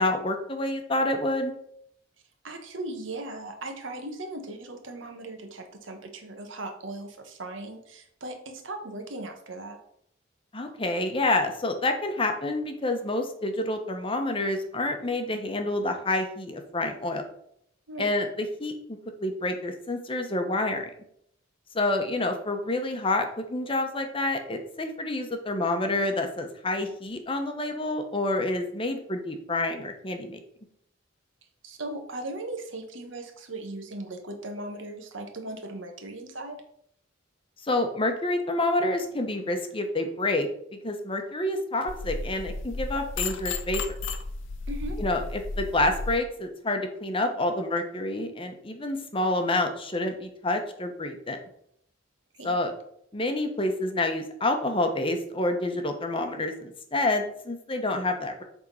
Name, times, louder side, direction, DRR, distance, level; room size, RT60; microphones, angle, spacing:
voice 1, 0.0-1.5 10.5-17.2 18.0-18.7 19.2-20.8 21.7-30.4 37.6-40.5 40.8-43.8 45.0-51.4 52.4-52.7 53.1-58.4, left 2 dB, 25° left, 5 dB, 0.9 m, -28 dB
voice 2, 2.4-9.8 17.9-18.1 31.6-36.6 44.7-45.0 52.3-52.6, right 2 dB, 75° right, 4 dB, 1.3 m, -38 dB
sound 1, 41.9-46.2, left 3 dB, 70° left, 0.8 m, -33 dB
7.7 x 3.7 x 5.4 m, 0.70 s
head